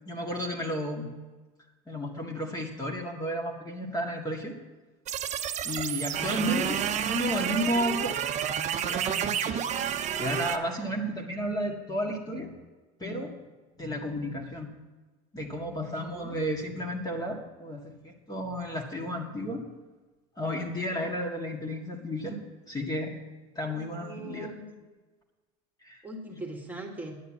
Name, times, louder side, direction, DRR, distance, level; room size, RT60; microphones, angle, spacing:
voice 1, 0.1-1.1 1.9-4.6 5.6-8.2 8.7-9.6 10.2-12.5 13.0-13.3 13.8-14.7 15.3-19.7 20.4-22.4 22.7-23.1 23.6-24.5 25.8-26.1, equal, 20° left, 1 dB, 1.9 m, -32 dB
sound 1, 5.1-10.6, right 9 dB, 35° right, 0.8 m, -30 dB
voice 2, 6.2-6.7 9.5-9.7 16.1-16.6 21.0-21.1 23.6-24.7 26.0-27.2, right 2 dB, 10° right, 1 dB, 1.9 m, -42 dB
10.5 x 6.6 x 9.1 m, 1.2 s
supercardioid pair, 105°, 19 cm